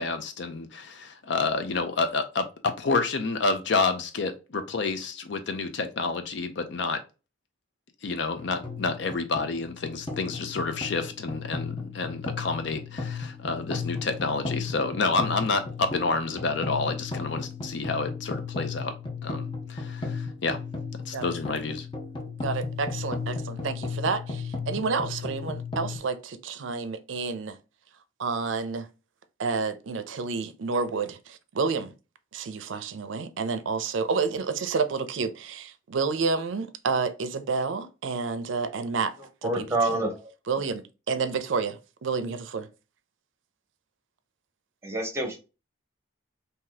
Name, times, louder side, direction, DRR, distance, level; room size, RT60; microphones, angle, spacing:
voice 1, 0.0-7.0 8.0-18.9 19.2-20.6 21.1-21.9, left 4 dB, 65° left, 0.6 m, -29 dB
sound 1, 8.4-26.0, left 4 dB, 25° left, 0.7 m, -35 dB
voice 2, 22.4-27.6 28.2-28.9 29.4-31.9 32.3-39.1 39.4-39.7 40.5-42.7, right 4 dB, 75° right, 0.5 m, -29 dB
voice 3, 39.4-40.3 44.8-45.4, right 2 dB, 15° right, 0.9 m, -27 dB
2.8 x 2.7 x 3.9 m
head